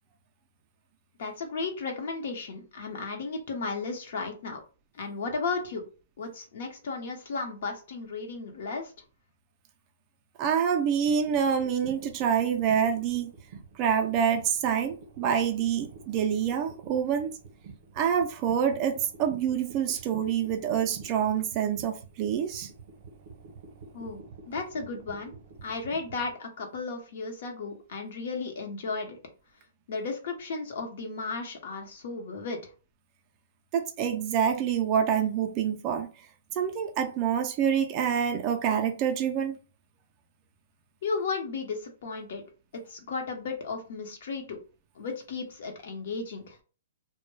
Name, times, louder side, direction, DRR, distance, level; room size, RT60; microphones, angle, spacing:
voice 1, 1.2-4.6 5.0-5.8 6.2-8.9 23.9-25.3 25.6-29.2 29.9-32.7 41.0-42.4 42.7-44.6 45.0-46.6, left 4 dB, 60° left, 0.8 m, -34 dB
voice 2, 10.4-13.3 13.8-17.3 17.9-22.7 33.7-36.1 36.5-39.6, right 8 dB, 30° right, 0.3 m, -26 dB
sound 1, 11.1-26.3, right 4 dB, 50° right, 0.7 m, -48 dB
2.2 x 2.0 x 3.1 m
hypercardioid pair, 155°, 0 cm